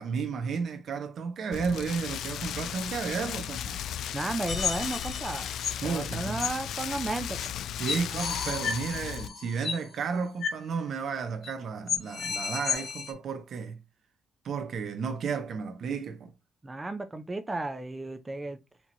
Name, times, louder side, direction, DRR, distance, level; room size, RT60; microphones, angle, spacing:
voice 1, 0.0-3.8 5.8-6.4 7.8-13.8 14.4-16.3, right 5 dB, 60° right, 0.7 m, -33 dB
Rain, 1.5-9.3, left 10 dB, 75° left, 0.3 m, -36 dB
voice 2, 4.1-5.5 5.8-7.4 16.6-18.6, right 2 dB, 20° right, 0.6 m, -33 dB
sound 1, 4.5-5.8 6.4-6.5 7.4-7.5 7.9-9.9 10.4-10.6 10.9-11.0 11.4-11.5 11.9-13.1, left 6 dB, 50° left, 1.3 m, -33 dB
4.5 x 2.8 x 3.8 m
cardioid pair, 90°, 0 cm